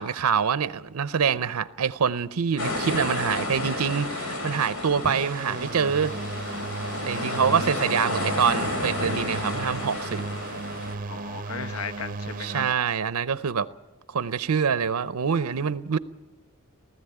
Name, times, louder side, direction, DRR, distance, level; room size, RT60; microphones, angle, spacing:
voice 1, 0.0-6.1 7.1-10.3 12.4-13.7 14.1-16.0, right 6 dB, 80° right, 0.6 m, -25 dB
sound 1, 2.6-11.0, left 1 dB, 85° left, 3.2 m, -31 dB
sound 2, 5.0-12.7, right 3 dB, 40° right, 0.6 m, -35 dB
voice 2, 7.1-8.1 11.1-12.6, left 5 dB, 70° left, 0.9 m, -37 dB
19.5 x 14.0 x 9.9 m
head